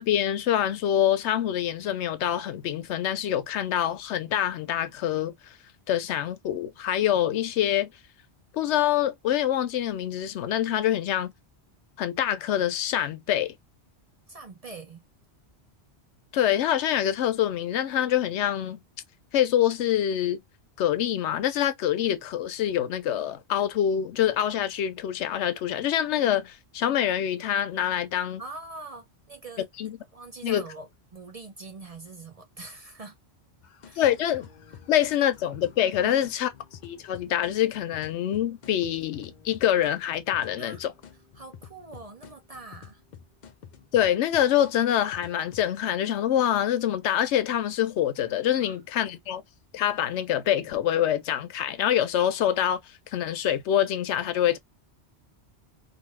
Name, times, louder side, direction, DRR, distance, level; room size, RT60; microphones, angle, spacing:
voice 1, 0.0-5.3 5.9-7.9 8.5-11.3 12.0-13.5 16.3-18.8 19.3-20.4 20.8-28.4 29.8-29.9 30.4-30.6 34.0-34.5 34.9-36.5 36.8-40.9 43.9-49.4 49.7-52.8 53.1-54.6, left 11 dB, 85° left, 0.9 m, -25 dB
voice 2, 14.3-15.0 28.4-29.7 30.1-33.2 33.8-34.1 36.0-36.4 40.5-40.8 41.3-43.0 48.5-48.8, right 3 dB, 45° right, 0.5 m, -43 dB
sound 1, 33.6-45.9, left 7 dB, 55° left, 0.6 m, -49 dB
2.6 x 2.5 x 3.1 m
omnidirectional pair, 1.1 m